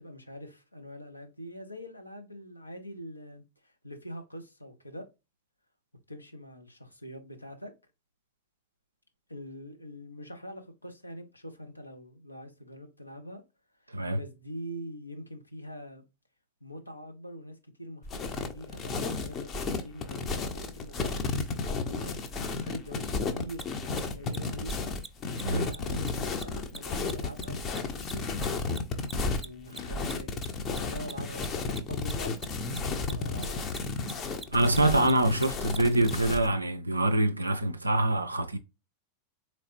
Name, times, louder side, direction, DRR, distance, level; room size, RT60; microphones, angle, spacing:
voice 1, 0.0-5.1 6.1-7.7 9.3-13.4 14.1-16.0 16.6-22.2 22.6-24.7 25.5-29.1 29.4-33.9, equal, 85° left, 0.8 m, -44 dB
sound 1, 18.0-36.5, left 4 dB, 30° left, 0.7 m, -33 dB
Mechanisms, 23.5-23.6 23.9-24.0 24.3-24.4 24.6-24.7 25.0-25.1 25.3-25.4 25.7-25.8 26.1-28.8 29.0-36.1, right 3 dB, 5° right, 0.4 m, -42 dB
voice 2, 34.5-38.6, right 1 dB, 85° right, 0.4 m, -25 dB
4.0 x 3.1 x 2.9 m
figure-of-eight pair, 90°, 0 cm